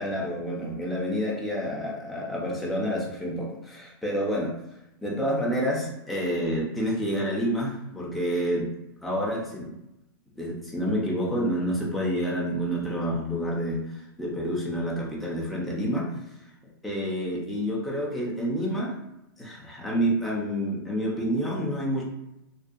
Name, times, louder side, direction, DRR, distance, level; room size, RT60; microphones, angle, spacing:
voice 1, 0.0-4.5 5.0-8.7 9.0-9.7 10.4-16.1 16.8-19.0 19.4-22.0, equal, ahead, -5 dB, 0.4 m, -28 dB
2.6 x 2.1 x 2.3 m, 0.87 s
hypercardioid pair, 155°, 13 cm